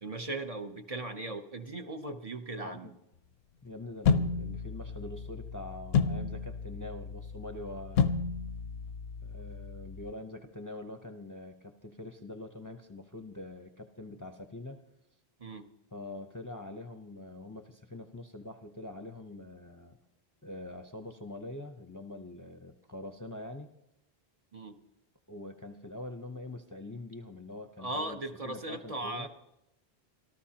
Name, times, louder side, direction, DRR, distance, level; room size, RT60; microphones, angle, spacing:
voice 1, 0.0-2.9 15.4-15.6 24.5-24.7 27.8-29.3, right 2 dB, 40° right, 5 dB, 0.9 m, -38 dB
voice 2, 2.6-2.9 3.6-8.0 9.2-14.8 15.9-20.0 20.4-23.7 25.3-29.3, left 2 dB, 20° left, 6 dB, 0.7 m, -44 dB
sound 1, 4.0-10.1, left 5 dB, 75° left, 0.9 m, -32 dB
26.0 x 13.0 x 2.9 m, 0.87 s
omnidirectional pair, 1.1 m